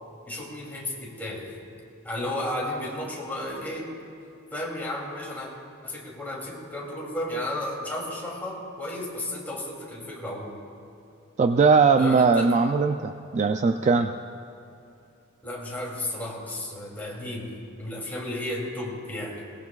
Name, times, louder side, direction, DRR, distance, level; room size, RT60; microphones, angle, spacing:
voice 1, 0.3-1.5 2.0-3.9 4.5-5.5 5.8-10.6 12.0-12.5 15.4-17.5 17.8-19.4, left 1 dB, 10° left, -4 dB, 2.9 m, -33 dB
voice 2, 11.4-14.1, right 4 dB, 35° right, 7 dB, 0.4 m, -20 dB
22.0 x 18.5 x 2.4 m, 2.6 s
head